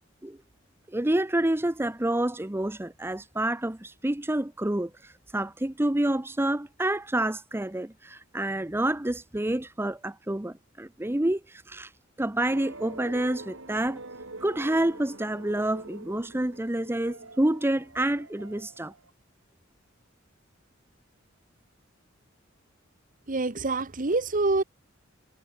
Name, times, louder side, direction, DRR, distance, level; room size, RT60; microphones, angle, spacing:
voice 1, 0.9-11.9 12.2-14.0 14.4-18.9, right 1 dB, 10° right, 0.8 m, -28 dB
sound 1, 12.5-19.1, right 2 dB, 85° right, 6.3 m, -45 dB
voice 2, 23.3-24.6, right 3 dB, 45° right, 1.1 m, -26 dB
head